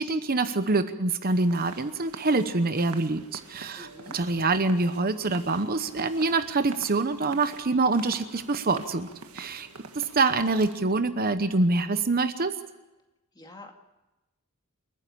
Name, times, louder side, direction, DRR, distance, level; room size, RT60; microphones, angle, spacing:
voice 1, 0.0-3.9 4.1-9.1 9.3-9.7 9.9-12.5, right 3 dB, 45° right, 10 dB, 1.0 m, -25 dB
sound 1, 1.3-10.8, right 4 dB, 85° right, 1.6 m, -46 dB
voice 2, 3.7-4.2 13.3-13.7, left 2 dB, 20° left, 3 dB, 2.3 m, -46 dB
28.5 x 9.8 x 9.9 m, 1.0 s
head